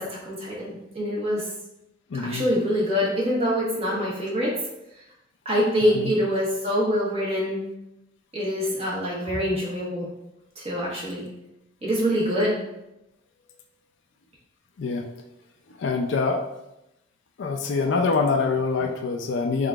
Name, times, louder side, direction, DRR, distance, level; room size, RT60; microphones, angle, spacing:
voice 1, 0.0-1.4 2.1-4.5 5.4-7.6 8.3-10.1 10.6-11.2 11.8-12.6, equal, 35° right, -5 dB, 1.2 m, -25 dB
voice 2, 2.1-2.4 5.9-6.1 14.8-15.1 15.8-16.4 17.4-19.7, left 4 dB, 85° left, 3 dB, 0.4 m, -25 dB
3.8 x 3.7 x 2.3 m, 0.87 s
head